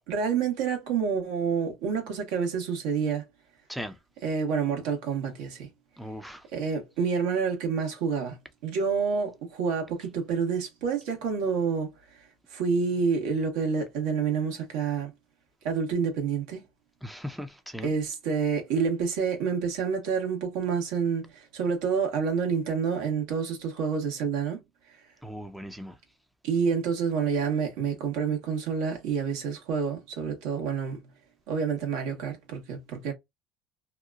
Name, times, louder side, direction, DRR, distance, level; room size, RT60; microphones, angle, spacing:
voice 1, 0.1-3.2 4.2-5.7 6.5-8.4 8.6-11.9 12.5-15.1 15.6-16.6 17.8-24.6 26.4-31.1 31.5-33.1, right 6 dB, 80° right, 1.2 m, -28 dB
voice 2, 6.0-6.5 17.0-17.9 25.2-26.0, equal, ahead, 0.6 m, -38 dB
2.8 x 2.3 x 2.4 m
supercardioid pair, 90°, 0 cm